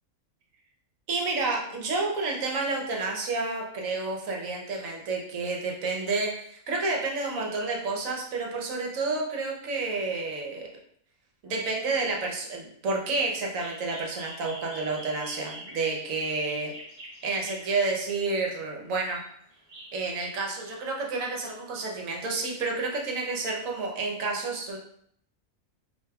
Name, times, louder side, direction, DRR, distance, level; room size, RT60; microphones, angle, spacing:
voice 1, 1.1-10.7 11.4-16.7 17.2-19.2 19.9-24.8, right 3 dB, 70° right, -1 dB, 1.1 m, -30 dB
sound 1, 13.4-18.2 18.9-20.3, right 1 dB, 35° right, 0.6 m, -45 dB
5.0 x 2.7 x 2.2 m, 0.68 s
omnidirectional pair, 1.5 m